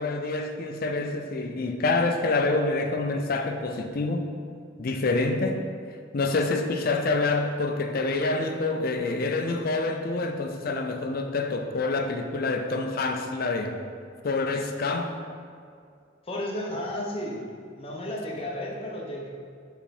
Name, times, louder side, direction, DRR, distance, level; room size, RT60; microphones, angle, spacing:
voice 1, 0.0-4.3 4.8-5.6 6.1-13.8 14.2-15.2, left 3 dB, 50° left, 5 dB, 0.5 m, -27 dB
voice 2, 16.2-17.5 17.7-19.3, left 1 dB, 30° left, -3 dB, 0.9 m, -33 dB
7.2 x 3.4 x 4.2 m, 2.3 s
head